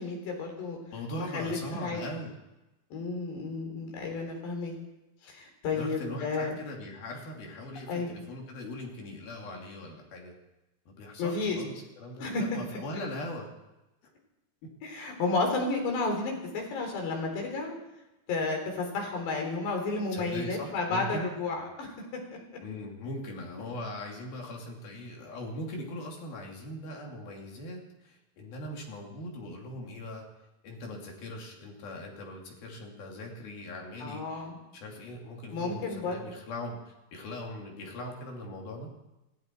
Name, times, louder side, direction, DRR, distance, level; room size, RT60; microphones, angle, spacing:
voice 1, 0.0-0.8 1.2-2.0 2.9-4.7 5.2-6.6 7.9-8.1 11.2-11.6 12.2-12.4 14.8-17.7 18.3-21.9 34.0-34.6 35.5-36.2, left 3 dB, 85° left, 2 dB, 5.9 m, -32 dB
voice 2, 0.9-2.4 5.7-10.4 10.9-13.5 14.6-14.7 20.1-21.3 22.6-30.2 30.6-34.2 34.7-38.9, left 1 dB, 65° left, 0 dB, 4.4 m, -40 dB
19.5 x 16.0 x 4.5 m, 0.99 s
omnidirectional pair, 4.8 m